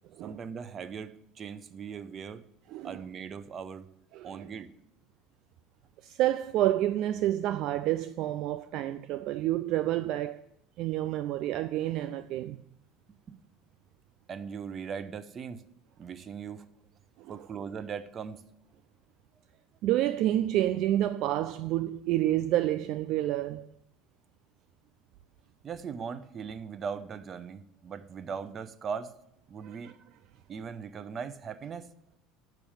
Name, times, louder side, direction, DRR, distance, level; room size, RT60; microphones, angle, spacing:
voice 1, 0.2-2.4 2.8-3.9 4.2-4.7 13.3-13.4 14.3-15.6 16.0-16.7 17.3-18.5 25.6-29.1 29.5-29.9 30.5-31.9, right 6 dB, 40° right, 0.7 m, -39 dB
voice 2, 4.1-4.5 6.0-10.4 10.8-12.6 17.2-17.5 19.8-23.7 29.6-29.9, right 13 dB, 60° right, 0.3 m, -29 dB
7.0 x 6.0 x 7.3 m
hypercardioid pair, 75°, 0 cm